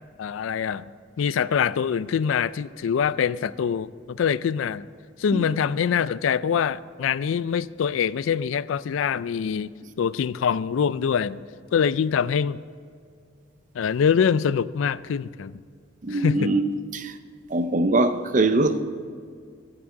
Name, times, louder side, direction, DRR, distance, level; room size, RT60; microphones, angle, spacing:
voice 1, 0.2-0.9 1.2-4.9 5.2-9.7 10.0-11.4 11.7-12.6 13.7-15.5 16.1-16.5, left 7 dB, 85° left, 0.3 m, -24 dB
voice 2, 16.0-17.1 17.5-18.8, right 2 dB, 40° right, 0.6 m, -22 dB
14.5 x 6.1 x 8.5 m
head